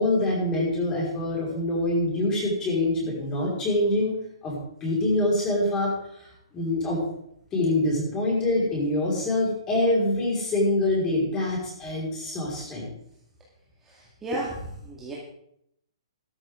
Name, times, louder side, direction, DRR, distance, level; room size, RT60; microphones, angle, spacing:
voice 1, 0.0-4.1 4.4-7.0 7.5-12.9, left 1 dB, 15° left, -4 dB, 5.0 m, -25 dB
voice 2, 13.8-15.1, right 1 dB, 10° right, -5 dB, 2.1 m, -33 dB
13.0 x 12.5 x 3.8 m, 0.73 s
hypercardioid pair, 155°, 3 cm